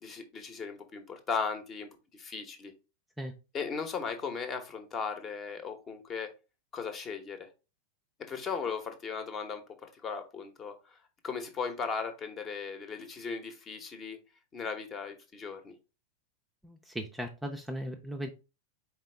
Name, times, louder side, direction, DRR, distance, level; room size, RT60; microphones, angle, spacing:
voice 1, 0.0-2.7 3.5-6.3 6.7-7.5 8.3-11.0 11.2-14.2 14.5-15.7, left 5 dB, 25° left, 7 dB, 0.9 m, -37 dB
voice 2, 16.6-18.3, equal, 5° right, 3 dB, 0.6 m, -37 dB
4.5 x 3.5 x 3.3 m, 0.30 s
figure-of-eight pair, 90°, 0 cm